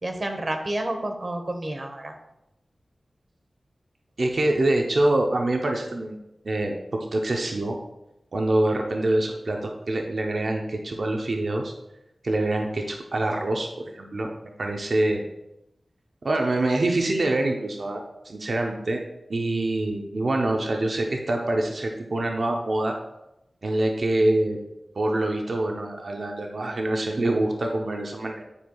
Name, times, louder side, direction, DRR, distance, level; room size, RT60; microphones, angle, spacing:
voice 1, 0.0-2.1, right 1 dB, 45° right, 4 dB, 1.0 m, -30 dB
voice 2, 4.2-6.2 6.4-7.8 8.3-11.7 12.2-13.7 13.9-14.3 14.6-15.2 16.2-19.0 19.3-22.9 23.6-24.6 25.0-28.4, right 2 dB, 65° right, 2 dB, 0.7 m, -25 dB
9.8 x 4.5 x 2.3 m, 0.89 s
wide cardioid pair, 65°, 0 cm